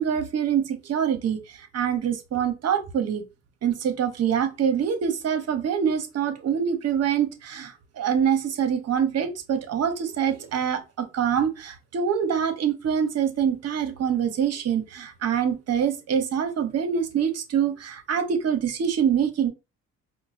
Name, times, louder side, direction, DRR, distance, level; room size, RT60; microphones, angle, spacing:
voice 1, 0.0-3.2 3.6-19.5, right 8 dB, 55° right, 0.8 m, -25 dB
4.5 x 2.1 x 2.5 m
cardioid pair, 90°, 30 cm